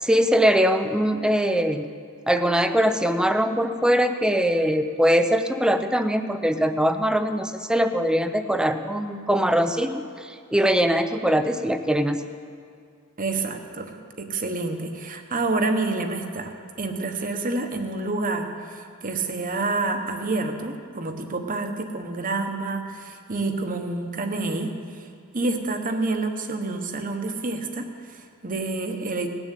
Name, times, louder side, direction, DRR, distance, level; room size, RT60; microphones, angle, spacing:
voice 1, 0.0-1.9 2.3-12.2, equal, 5° right, 8 dB, 0.6 m, -22 dB
voice 2, 13.2-25.1 25.3-29.3, right 3 dB, 40° right, 6 dB, 1.1 m, -28 dB
19.0 x 7.2 x 8.3 m, 2.2 s
head